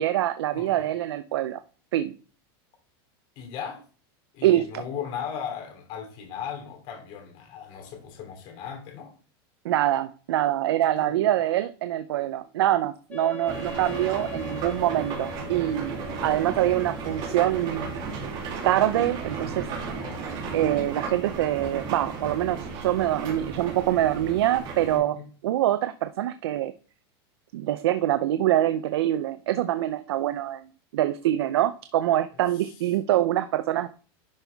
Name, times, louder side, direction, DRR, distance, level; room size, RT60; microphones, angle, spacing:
voice 1, 0.0-1.6 1.9-2.1 4.4-4.7 9.6-18.0 18.6-19.7 20.5-25.2 25.4-26.7 27.5-30.7 30.9-33.9, right 13 dB, 85° right, 0.6 m, -25 dB
voice 2, 0.5-0.9 3.4-3.8 4.3-9.1 11.0-11.3 16.0-16.6 19.9-20.3 24.9-25.2, left 7 dB, 40° left, 2.7 m, -37 dB
Wind instrument woodwind instrument, 13.1-18.2, left 5 dB, 10° left, 1.2 m, -41 dB
sound 1, 13.5-25.0, right 4 dB, 35° right, 2.5 m, -34 dB
10.5 x 5.5 x 3.4 m
supercardioid pair, 155°, 13 cm